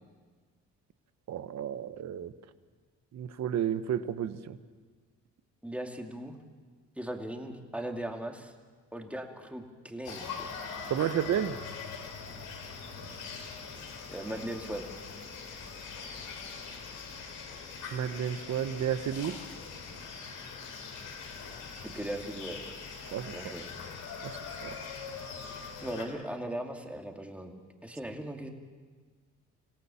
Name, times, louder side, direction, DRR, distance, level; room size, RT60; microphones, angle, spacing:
voice 1, 1.3-2.3 3.1-4.6 10.9-11.6 17.9-19.4 23.1-23.3 24.2-24.7, right 9 dB, 60° right, 12 dB, 1.2 m, -32 dB
voice 2, 5.6-6.4 7.0-8.5 8.9-10.5 14.1-14.9 21.7-22.6 23.3-23.7 25.8-27.5 27.8-28.5, right 1 dB, 5° right, 3 dB, 2.6 m, -38 dB
Village jungle morning, 10.0-26.0, left 5 dB, 85° left, 3.6 m, -42 dB
26.5 x 17.0 x 7.2 m, 1.5 s
cardioid pair, 90°, 30 cm